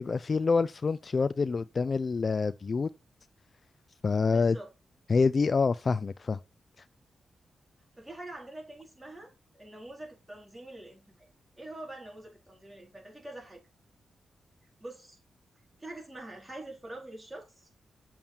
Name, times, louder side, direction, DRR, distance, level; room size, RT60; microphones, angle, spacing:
voice 1, 0.0-2.9 4.0-4.6 5.1-6.4, left 4 dB, 45° left, 0.4 m, -26 dB
voice 2, 4.3-4.7 8.0-11.3 11.6-13.6 14.8-15.2 15.8-17.7, right 1 dB, 15° right, 4.1 m, -45 dB
7.3 x 7.1 x 4.5 m
cardioid pair, 85°, 0 cm